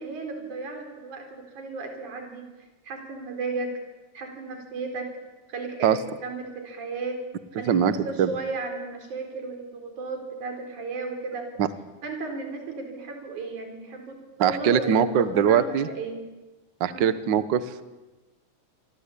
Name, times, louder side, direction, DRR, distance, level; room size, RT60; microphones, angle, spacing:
voice 1, 0.0-2.5 2.8-3.7 4.1-5.1 5.5-7.2 7.5-11.5 12.0-16.2 16.9-17.1, right 3 dB, 85° right, 4 dB, 5.5 m, -34 dB
voice 2, 14.4-15.9 16.8-17.8, right 8 dB, 50° right, 13 dB, 1.5 m, -21 dB
28.5 x 23.5 x 8.5 m, 1.1 s
omnidirectional pair, 3.3 m